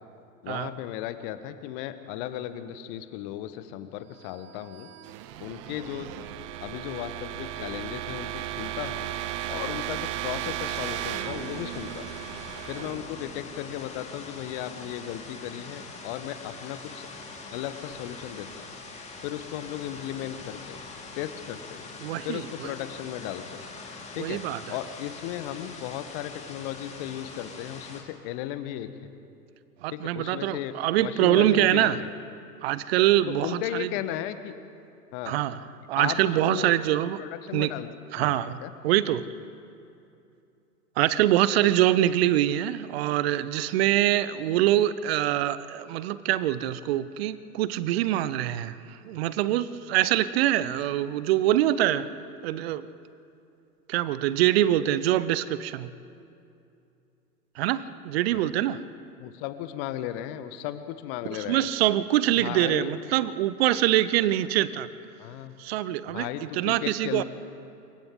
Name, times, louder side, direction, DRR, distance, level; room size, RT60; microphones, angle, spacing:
voice 1, 0.4-4.9 5.4-6.1 6.6-9.1 9.5-12.1 12.7-17.1 17.5-18.6 19.2-20.8 21.2-21.8 22.2-23.6 24.2-24.4 24.7-28.9 29.9-30.7 31.0-31.9 33.4-34.5 35.1-35.4 36.0-36.8 37.2-37.9 38.2-38.3 38.6-38.7 58.3-58.5 59.2-61.7 62.4-62.9 65.2-65.5 66.1-67.2, left 12 dB, 35° left, 11 dB, 1.3 m, -35 dB
sound 1, 4.3-14.1, right 13 dB, 20° right, 0.5 m, -36 dB
sound 2, 10.7-28.0, left 3 dB, 15° left, 2.7 m, -43 dB
voice 2, 22.0-22.7 24.2-24.8 29.8-32.0 32.6-33.9 35.3-37.2 37.5-37.7 38.1-38.6 38.8-39.2 41.0-52.1 52.4-52.9 53.9-55.9 57.6-58.8 61.3-64.9 65.6-67.2, right 13 dB, 40° right, 16 dB, 0.8 m, -24 dB
29.0 x 23.5 x 3.8 m, 2.6 s
figure-of-eight pair, 105°, 48 cm